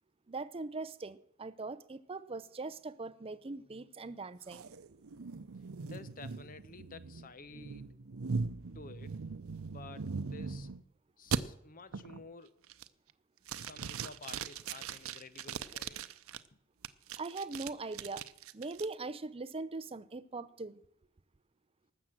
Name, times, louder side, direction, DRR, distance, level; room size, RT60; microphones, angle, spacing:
voice 1, 0.3-4.7 17.2-18.2 18.5-20.8, right 3 dB, 30° right, 0.6 m, -41 dB
sound 1, 4.5-10.8 11.3-11.4 11.9-12.3 12.7-13.1 13.5-16.4 16.8-18.9, right 5 dB, 90° right, 0.7 m, -40 dB
voice 2, 5.9-8.0 8.7-9.3 9.7-10.7 11.2-12.6 13.6-16.0, left 4 dB, 40° left, 0.8 m, -52 dB
19.0 x 7.4 x 7.6 m
head